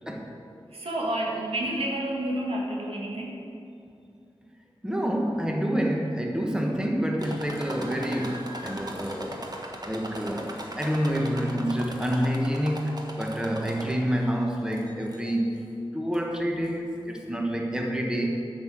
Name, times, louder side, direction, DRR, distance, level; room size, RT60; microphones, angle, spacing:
voice 1, 0.7-3.4, right 1 dB, 85° right, -2 dB, 1.9 m, -29 dB
voice 2, 4.8-9.4 9.8-15.6 15.9-18.4, equal, 10° right, 1 dB, 1.3 m, -28 dB
sound 1, 7.2-14.2 14.7-15.3 16.1-16.2 16.6-16.7, right 1 dB, 45° right, 1.3 m, -39 dB
10.5 x 6.3 x 7.5 m, 2.5 s
wide cardioid pair, 70°, 10 cm